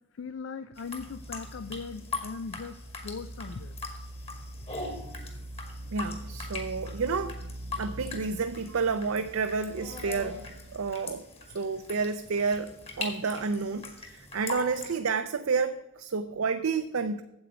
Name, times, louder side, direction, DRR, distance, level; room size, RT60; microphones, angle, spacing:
voice 1, 0.1-3.8, left 5 dB, 60° left, 12 dB, 0.4 m, -39 dB
sound 1, 0.8-14.9, left 3 dB, 30° left, 1.7 m, -41 dB
sound 2, 1.0-10.9, right 1 dB, 10° right, 1.0 m, -43 dB
voice 2, 5.9-7.4 7.8-10.4 10.7-11.2 11.5-17.2, right 4 dB, 75° right, 8 dB, 0.6 m, -30 dB
8.9 x 8.0 x 5.5 m, 0.92 s
head